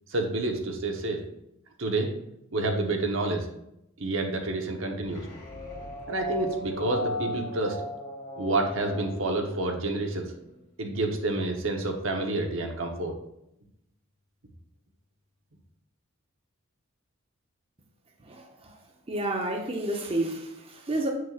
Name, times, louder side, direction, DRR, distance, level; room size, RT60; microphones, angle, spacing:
voice 1, 0.1-1.2 1.8-2.1 2.5-3.5 4.0-5.3 6.1-7.8 8.4-10.2 10.8-13.1, right 2 dB, 70° right, 3 dB, 1.0 m, -28 dB
sound 1, 5.0-10.5, left 1 dB, 45° left, 1.8 m, -37 dB
voice 2, 18.2-18.8 19.1-21.1, right 1 dB, 30° right, 1 dB, 0.7 m, -30 dB
7.3 x 6.3 x 2.4 m, 0.80 s
head